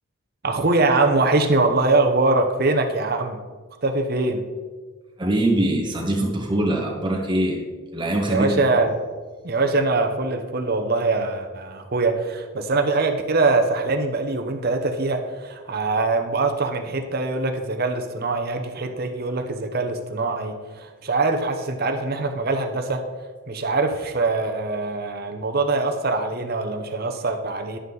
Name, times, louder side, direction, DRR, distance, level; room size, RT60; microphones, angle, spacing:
voice 1, 0.4-3.4 3.8-4.4 8.3-8.9 9.4-23.0 23.5-27.8, right 3 dB, 45° right, 5 dB, 0.8 m, -23 dB
voice 2, 5.2-7.6 7.9-8.7, right 1 dB, 20° right, 0 dB, 1.5 m, -23 dB
11.0 x 8.0 x 3.9 m, 1.4 s
head